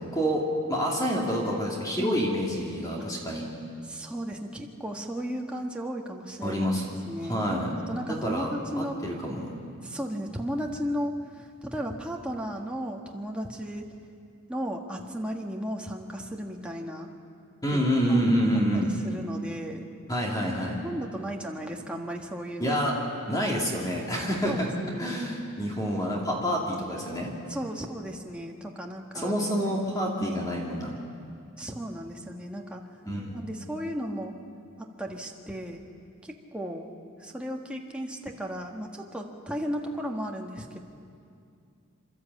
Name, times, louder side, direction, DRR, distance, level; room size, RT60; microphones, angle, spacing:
voice 1, 0.7-3.4 6.4-6.8 7.2-7.7 8.1-9.5 17.6-18.9 20.1-20.8 22.6-22.9 23.3-24.7 25.0-27.3 29.1-31.0 33.0-33.4, equal, 15° left, -3 dB, 2.5 m, -27 dB
voice 2, 3.8-6.7 7.1-7.4 7.8-9.0 9.8-13.9 14.5-17.1 17.7-18.2 18.7-19.9 20.7-22.8 24.5-25.2 27.5-29.3 30.2-30.5 31.6-32.8 33.3-34.3 34.8-35.8 36.2-36.9 37.2-40.8, equal, 5° right, 0 dB, 1.5 m, -35 dB
28.5 x 12.5 x 8.5 m, 2.4 s
head